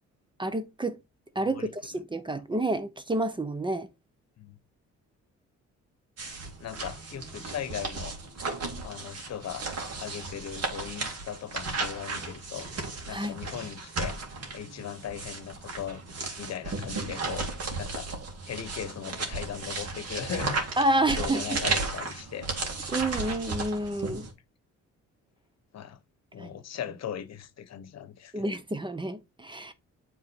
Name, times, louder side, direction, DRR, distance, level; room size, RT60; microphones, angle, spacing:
voice 1, 0.4-1.0 1.3-3.9 13.1-13.3 20.8-21.6 22.9-24.3 26.4-26.5 28.3-29.7, right 1 dB, 15° right, 0.8 m, -29 dB
voice 2, 1.4-1.7 4.4-4.6 6.6-8.1 8.8-9.7 10.0-12.7 13.1-14.2 14.5-16.0 16.4-17.5 17.7-18.1 18.4-20.6 21.2-22.7 25.7-26.0 26.3-28.4, left 9 dB, 60° left, 1.0 m, -38 dB
sound 1, 6.2-24.3, right 3 dB, 55° right, 2.3 m, -35 dB
7.6 x 3.9 x 4.3 m
cardioid pair, 90°, 30 cm